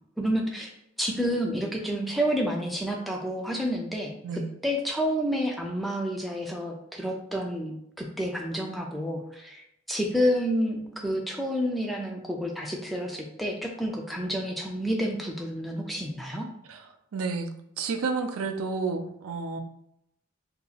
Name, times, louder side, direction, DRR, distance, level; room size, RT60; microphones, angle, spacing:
voice 1, 0.2-0.7 1.0-9.6 9.9-16.5, equal, ahead, 0 dB, 0.3 m, -29 dB
voice 2, 17.1-17.5 17.8-19.6, right 4 dB, 70° right, 6 dB, 0.4 m, -30 dB
2.8 x 2.4 x 3.9 m, 0.77 s
head